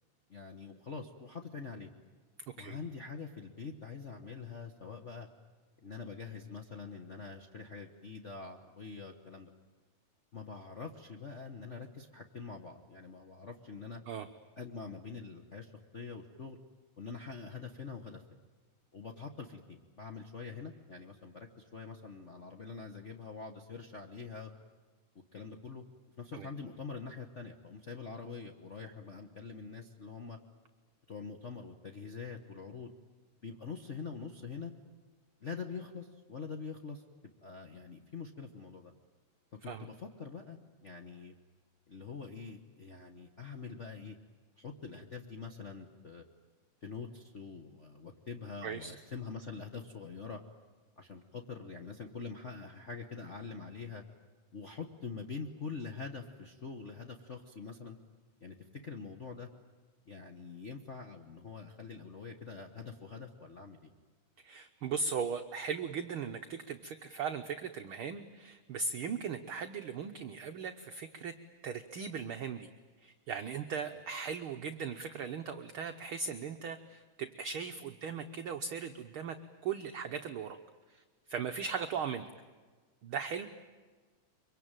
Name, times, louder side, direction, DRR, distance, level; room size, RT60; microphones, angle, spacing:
voice 1, 0.3-1.9 2.6-5.3 5.8-9.5 10.3-14.0 14.6-16.6 17.0-18.2 18.9-24.5 25.3-25.8 26.2-30.4 31.1-32.9 33.4-34.7 35.4-37.0 37.4-38.9 39.6-41.3 41.9-44.2 44.6-46.2 46.8-50.4 51.0-54.0 54.5-58.0 58.4-59.5 60.0-63.9, left 5 dB, 65° left, 4 dB, 0.7 m, -45 dB
voice 2, 64.4-71.4 71.6-72.7 73.0-79.4 79.6-80.6 80.9-82.3 83.0-83.5, right 6 dB, 70° right, 6 dB, 1.3 m, -38 dB
24.5 x 24.0 x 9.1 m, 1.4 s
omnidirectional pair, 3.6 m